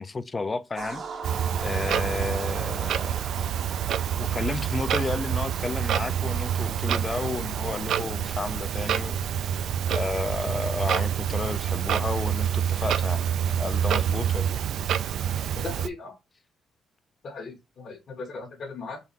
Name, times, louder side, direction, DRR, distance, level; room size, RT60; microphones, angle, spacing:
voice 1, 0.0-3.2 4.1-9.2 9.9-14.6, left 3 dB, 30° left, 0.4 m, -32 dB
sound 1, 0.8-7.8, right 5 dB, 50° right, 0.7 m, -39 dB
Clock, 1.2-15.9, right 9 dB, 75° right, 0.3 m, -27 dB
voice 2, 15.5-16.1 17.2-19.0, left 4 dB, 55° left, 1.2 m, -38 dB
3.9 x 2.6 x 4.0 m
cardioid pair, 90°, 0 cm